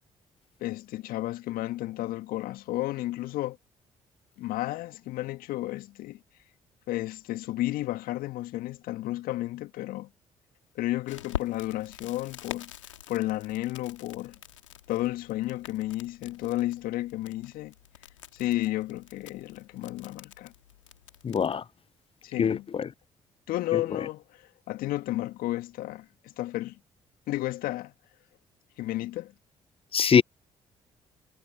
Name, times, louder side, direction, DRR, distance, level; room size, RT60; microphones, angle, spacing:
voice 1, 0.6-3.6 4.4-6.2 6.9-10.1 10.8-12.7 13.1-14.4 14.9-17.7 18.3-20.5 22.2-22.7 23.5-26.8 27.3-27.9 28.8-29.3, left 16 dB, 65° left, 1.9 m, -32 dB
Crackle, 11.1-21.6, left 11 dB, 85° left, 3.5 m, -45 dB
voice 2, 21.2-21.6 22.4-22.9 23.7-24.1 29.9-30.2, left 7 dB, 35° left, 0.7 m, -24 dB
hypercardioid pair, 45°, 16 cm